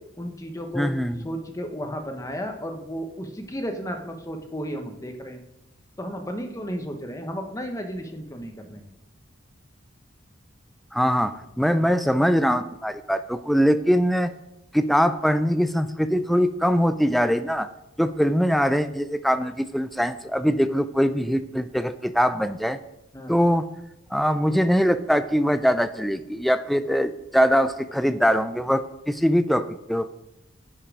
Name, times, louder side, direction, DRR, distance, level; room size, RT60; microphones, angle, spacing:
voice 1, 0.2-1.0 1.2-5.4 6.0-8.9 11.8-11.9 23.1-23.3, equal, 15° left, 5 dB, 0.9 m, -33 dB
voice 2, 0.7-1.2 10.9-14.3 14.7-17.7 18.0-22.8 23.3-23.7 24.1-30.1, equal, ahead, 11 dB, 0.3 m, -22 dB
10.5 x 5.5 x 4.9 m, 0.90 s
head